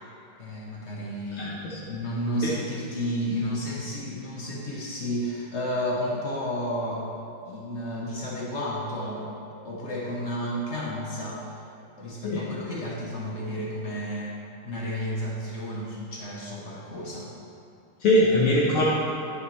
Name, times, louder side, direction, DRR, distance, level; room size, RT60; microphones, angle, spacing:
voice 1, 0.4-1.6 1.9-7.1 7.4-9.3 9.6-11.4 12.0-14.4 14.6-17.3, equal, 45° left, -3 dB, 0.9 m, -32 dB
voice 2, 1.3-1.8 2.4-2.5 12.2-12.5 18.0-18.8, left 1 dB, 80° left, -6 dB, 1.9 m, -22 dB
11.0 x 7.7 x 3.2 m, 2.8 s
omnidirectional pair, 2.3 m